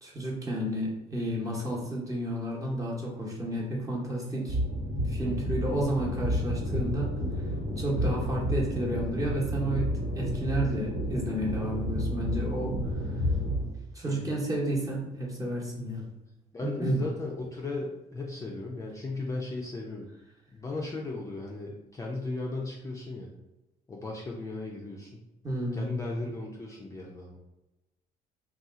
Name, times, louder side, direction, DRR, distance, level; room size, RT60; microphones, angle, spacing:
voice 1, 0.0-4.6 5.0-7.1 7.8-12.7 13.1-13.2 13.9-16.1 16.6-17.0 25.4-26.0, right 1 dB, 20° right, -3 dB, 1.0 m, -31 dB
sound 1, 4.5-13.6, equal, 80° right, 1.3 m, -31 dB
voice 2, 5.2-5.5 7.9-8.2 14.0-14.3 16.5-20.1 20.5-23.3 23.9-25.2 25.7-27.4, left 2 dB, 20° left, -2 dB, 0.4 m, -36 dB
2.7 x 2.4 x 3.6 m, 0.99 s
cardioid pair, 110°, 17 cm